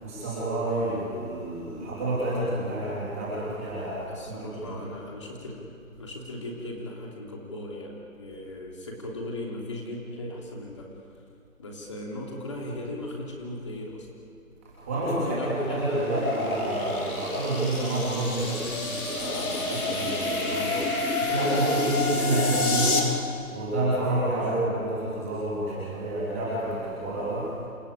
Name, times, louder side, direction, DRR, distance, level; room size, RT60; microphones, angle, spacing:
voice 1, 0.0-4.0 4.3-4.8 14.8-23.0 23.5-27.5, right 1 dB, 10° right, -9 dB, 3.4 m, -29 dB
voice 2, 4.0-5.7 6.0-10.9 11.6-14.1 15.0-16.2 24.3-24.5, left 1 dB, 20° left, -1 dB, 3.2 m, -37 dB
sound 1, 15.0-23.0, left 3 dB, 85° left, 6.7 m, -29 dB
29.0 x 21.5 x 8.7 m, 2.5 s
figure-of-eight pair, 180°, 42 cm